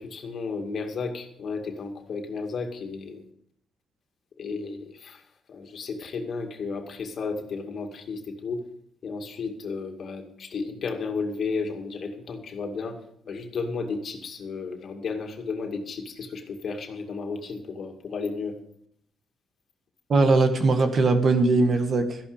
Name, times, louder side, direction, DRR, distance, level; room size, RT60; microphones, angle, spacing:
voice 1, 0.0-3.2 4.4-5.2 5.5-8.6 9.0-13.0 13.3-18.6, left 4 dB, 55° left, 4 dB, 2.2 m, -33 dB
voice 2, 20.1-22.2, right 3 dB, 50° right, 7 dB, 1.9 m, -20 dB
13.5 x 11.5 x 5.1 m, 0.68 s
cardioid pair, 90°, 0 cm